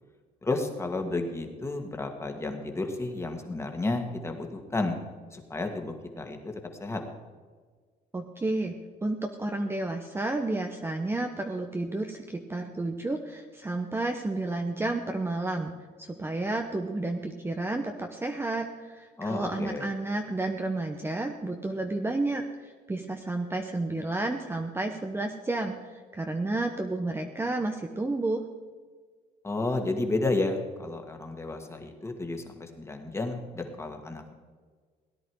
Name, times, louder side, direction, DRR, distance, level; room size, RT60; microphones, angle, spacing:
voice 1, 0.4-5.0 5.3-6.4 6.8-7.0 19.2-19.9 29.4-34.3, left 2 dB, 15° left, 4 dB, 1.9 m, -32 dB
voice 2, 8.1-8.7 9.0-15.7 16.0-22.4 22.9-28.4, right 2 dB, 15° right, 4 dB, 0.9 m, -31 dB
17.5 x 10.0 x 4.7 m, 1.5 s
cardioid pair, 110°, 17 cm